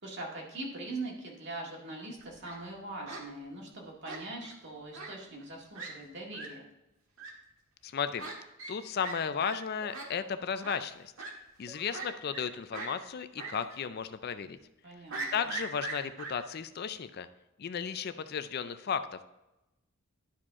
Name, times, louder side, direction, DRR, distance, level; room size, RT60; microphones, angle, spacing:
voice 1, 0.0-6.7 14.8-15.3, right 2 dB, 55° right, -1 dB, 2.0 m, -42 dB
Fowl, 2.2-2.6 3.1-3.2 4.0-4.5 4.9-5.1 5.4-5.5 5.7-5.9 6.3-6.5 7.2-7.3 8.2-8.3 8.6-8.7 9.0-9.1 9.4-9.5 9.9-10.1 10.6-10.8 11.2-11.3 11.9-12.5 12.7-12.9 13.4-13.5 13.8-13.9 15.1-16.3, right 3 dB, 80° right, 1.6 m, -39 dB
voice 2, 7.8-8.3 8.7-11.1 11.6-14.6 15.3-17.3 17.6-19.2, left 7 dB, 50° left, 12 dB, 0.4 m, -34 dB
sound 1, 8.2-8.3 9.8-10.2 11.7-12.0 13.5-13.9 15.4-15.7, right 1 dB, 10° right, 1.0 m, -53 dB
11.5 x 4.9 x 3.6 m, 0.94 s
head